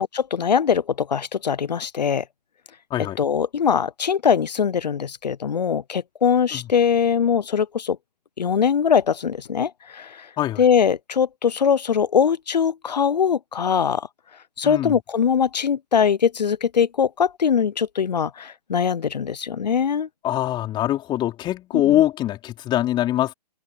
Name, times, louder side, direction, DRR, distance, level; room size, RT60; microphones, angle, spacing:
voice 1, 0.0-2.2 3.2-8.0 8.4-10.3 10.6-14.1 14.6-20.1 21.8-22.0, left 7 dB, 85° left, 0.7 m, -21 dB
voice 2, 14.6-14.9 20.2-23.3, left 13 dB, 20° left, 4.3 m, -23 dB
open air
hypercardioid pair, 135°, 21 cm